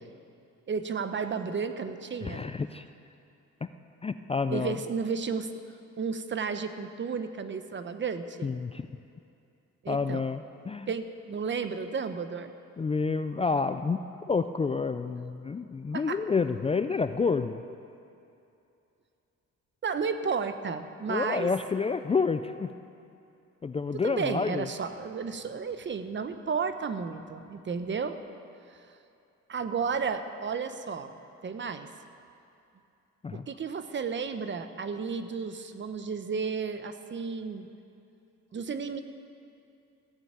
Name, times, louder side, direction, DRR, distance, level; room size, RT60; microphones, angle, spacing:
voice 1, 0.7-2.4 4.5-5.5 6.0-8.5 9.8-10.2 10.9-12.5 15.9-16.2 19.8-21.5 23.9-28.2 29.5-31.1 31.4-31.9 33.3-37.7 38.5-39.0, right 5 dB, 40° right, 9 dB, 0.9 m, -33 dB
voice 2, 2.2-2.9 3.6-3.7 4.0-4.8 8.4-8.9 9.9-10.9 12.8-17.6 21.1-22.7 23.6-24.7 33.2-33.5, left 4 dB, 20° left, 10 dB, 0.4 m, -29 dB
15.0 x 7.1 x 9.1 m, 2.7 s
cardioid pair, 90°, 30 cm